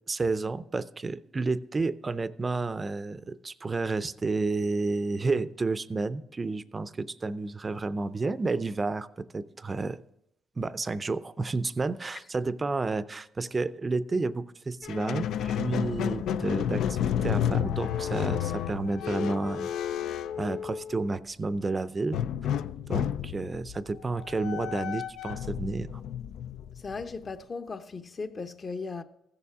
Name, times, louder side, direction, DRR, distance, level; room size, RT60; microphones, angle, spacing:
voice 1, 0.1-10.0 10.6-19.7 20.4-22.2 22.9-25.9, right 3 dB, 30° right, 0.5 m, -31 dB
Squeak, 14.8-21.2 22.1-27.3, left 10 dB, 80° left, 0.4 m, -31 dB
voice 2, 26.8-29.0, left 4 dB, 40° left, 0.8 m, -37 dB
15.5 x 6.9 x 3.6 m
cardioid pair, 90°, 0 cm